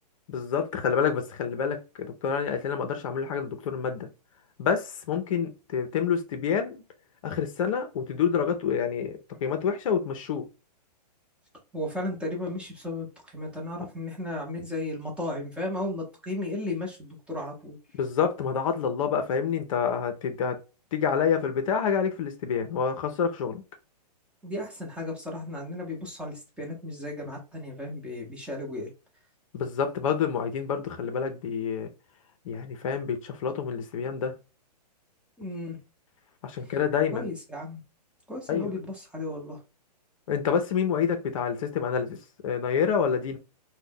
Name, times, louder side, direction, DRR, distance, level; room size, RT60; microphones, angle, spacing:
voice 1, 0.3-4.1 4.6-6.8 7.2-10.5 17.9-20.6 20.9-23.6 29.5-31.9 32.5-34.4 36.4-37.3 38.5-38.8 40.3-43.4, left 7 dB, 50° left, 0.5 m, -28 dB
voice 2, 11.7-17.8 24.4-28.9 35.4-35.8 36.6-36.7 37.1-37.8 38.3-39.6, left 1 dB, 5° right, 0.7 m, -34 dB
2.6 x 2.1 x 3.4 m
hypercardioid pair, 125°, 21 cm